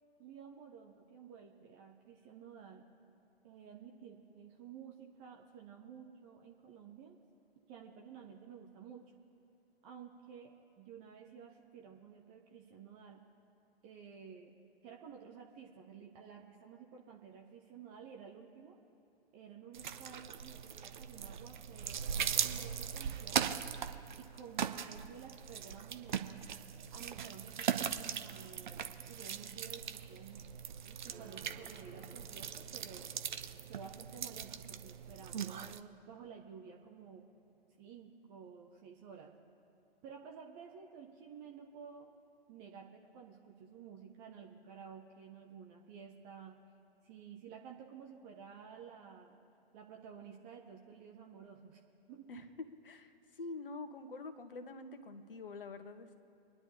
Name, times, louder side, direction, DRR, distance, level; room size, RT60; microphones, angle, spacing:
voice 1, 0.2-2.8 3.4-7.2 7.7-9.1 9.8-13.2 13.8-14.6 14.8-18.8 19.3-23.5 24.2-26.5 26.9-30.5 30.9-33.1 33.7-37.3 37.8-39.4 40.0-42.1 42.5-46.6 47.0-49.4 49.7-51.8 52.1-52.3, right 7 dB, 15° right, 1 dB, 0.4 m, -53 dB
sound 1, 19.7-35.8, right 8 dB, 50° right, 0.7 m, -40 dB
sound 2, 31.1-38.3, right 4 dB, 30° right, 1.7 m, -60 dB
voice 2, 53.4-56.1, left 3 dB, 60° left, 8 dB, 1.2 m, -46 dB
25.5 x 10.0 x 2.8 m, 2.9 s
figure-of-eight pair, 120°, 31 cm